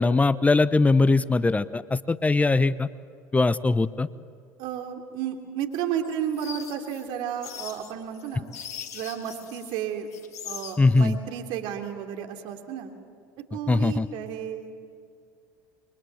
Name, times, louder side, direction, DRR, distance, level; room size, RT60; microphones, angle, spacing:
voice 1, 0.0-2.9 3.3-4.1 10.8-11.1 13.7-14.1, left 3 dB, 15° left, 17 dB, 0.7 m, -21 dB
voice 2, 4.6-8.5 8.9-10.1 10.4-12.9 13.5-14.8, right 9 dB, 65° right, 5 dB, 3.1 m, -32 dB
sound 1, 5.7-9.8 10.1-11.1, left 8 dB, 85° left, 2.2 m, -41 dB
29.0 x 23.0 x 7.9 m, 2.3 s
hypercardioid pair, 75°, 9 cm